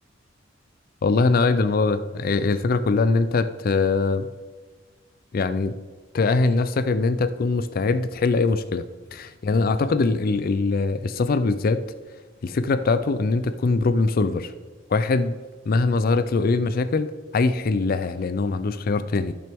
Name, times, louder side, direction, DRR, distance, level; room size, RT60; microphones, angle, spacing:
voice 1, 1.0-4.3 5.3-5.7 6.1-8.8 9.1-11.8 12.4-14.5 14.9-15.4 15.7-19.3, left 3 dB, 50° left, 11 dB, 0.4 m, -22 dB
13.5 x 5.9 x 3.5 m, 1.3 s
head